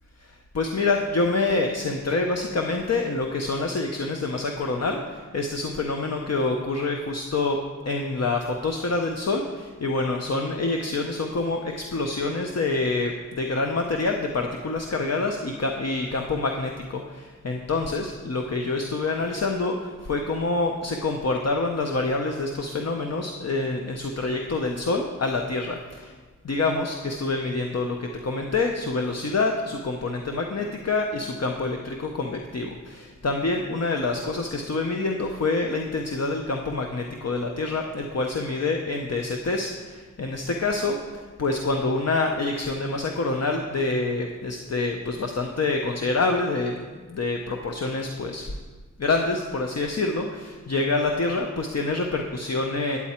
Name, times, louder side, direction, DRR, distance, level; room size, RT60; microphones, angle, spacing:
voice 1, 0.2-7.6 7.9-26.1 26.4-48.5 49.0-53.0, left 3 dB, 45° left, 3 dB, 0.7 m, -27 dB
9.2 x 8.4 x 4.3 m, 1.4 s
wide cardioid pair, 60°, 34 cm